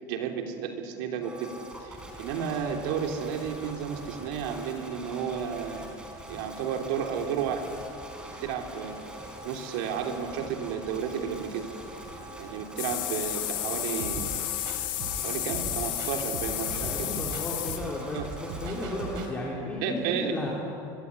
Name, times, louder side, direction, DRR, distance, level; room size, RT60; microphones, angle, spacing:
voice 1, 0.1-1.5 1.8-5.9 6.3-7.7 8.2-8.9 9.4-11.7 12.4-14.3 15.2-16.9 18.1-18.3 19.8-20.3, right 7 dB, 70° right, 4 dB, 3.4 m, -32 dB
sound 1, 1.2-19.3, right 1 dB, 10° right, 4.0 m, -43 dB
sound 2, 12.8-17.8, left 15 dB, 85° left, 3.2 m, -32 dB
sound 3, 14.0-19.3, right 5 dB, 85° right, 4.3 m, -40 dB
voice 2, 16.8-20.5, left 2 dB, 10° left, -4 dB, 3.5 m, -34 dB
24.5 x 22.5 x 9.9 m, 2.7 s
cardioid pair, 175°, 11 cm